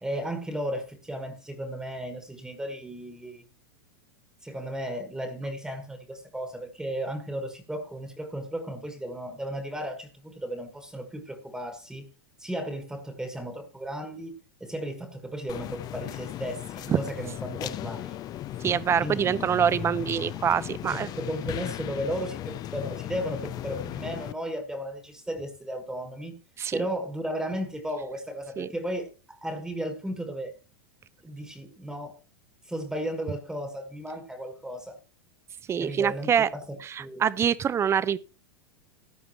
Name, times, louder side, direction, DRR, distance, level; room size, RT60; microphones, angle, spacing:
voice 1, 0.0-3.5 4.4-12.1 12.4-14.3 14.6-18.2 19.0-19.7 20.9-26.4 26.7-30.5 31.2-32.2 32.6-35.0 35.8-37.2, equal, 5° right, 1.5 m, -35 dB
sound 1, 15.5-24.3, left 12 dB, 30° left, 0.5 m, -36 dB
voice 2, 18.6-21.1 26.6-26.8 28.6-28.7 35.7-36.5 36.9-38.2, right 8 dB, 20° right, 0.6 m, -25 dB
14.0 x 10.0 x 3.0 m
supercardioid pair, 130°, 12 cm